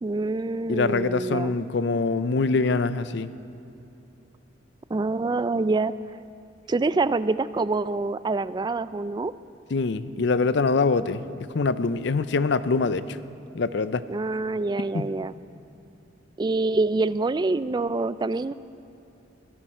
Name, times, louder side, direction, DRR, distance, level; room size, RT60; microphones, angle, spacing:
voice 1, 0.0-1.6 4.9-5.9 6.7-9.3 14.1-15.3 16.4-18.5, right 3 dB, 25° right, 15 dB, 0.3 m, -26 dB
voice 2, 0.7-3.3 9.7-11.2 11.5-13.2 13.5-14.0 14.9-15.1, left 4 dB, 65° left, 14 dB, 0.5 m, -24 dB
18.5 x 16.0 x 4.4 m, 2.9 s
head